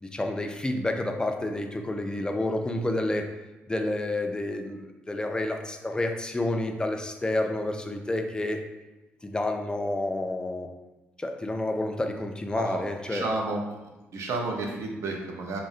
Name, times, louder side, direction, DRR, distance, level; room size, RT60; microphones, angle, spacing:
voice 1, 0.0-3.3 3.7-8.6 9.2-10.7 11.2-13.3, left 1 dB, 15° left, 5 dB, 0.3 m, -29 dB
voice 2, 12.6-13.6 14.1-15.6, right 3 dB, 65° right, 1 dB, 0.5 m, -31 dB
2.5 x 2.0 x 2.4 m, 1.0 s
hypercardioid pair, 50°, 5 cm